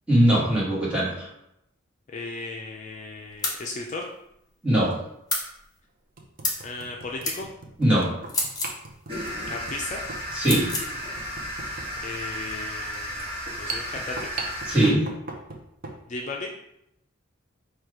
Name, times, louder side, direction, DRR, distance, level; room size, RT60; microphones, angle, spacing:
voice 1, 0.1-1.3 4.6-4.9 7.8-8.1 10.3-10.7 14.7-15.0, right 1 dB, 5° right, -7 dB, 1.5 m, -20 dB
voice 2, 2.1-4.1 6.6-7.5 9.5-10.0 12.0-13.3 13.6-14.3 16.1-16.5, left 3 dB, 40° left, 0 dB, 0.4 m, -35 dB
sound 1, 3.2-3.4 4.9-5.0 5.5-5.6 6.2-16.0, right 3 dB, 45° right, 0.6 m, -40 dB
sound 2, 3.4-3.6 5.3-5.5 6.4-6.7 7.2-7.4 8.3-8.8 10.4-10.9, left 2 dB, 20° left, 0.9 m, -28 dB
sound 3, 9.1-14.9, equal, 30° right, 1.3 m, -34 dB
4.4 x 2.4 x 4.8 m, 0.80 s
head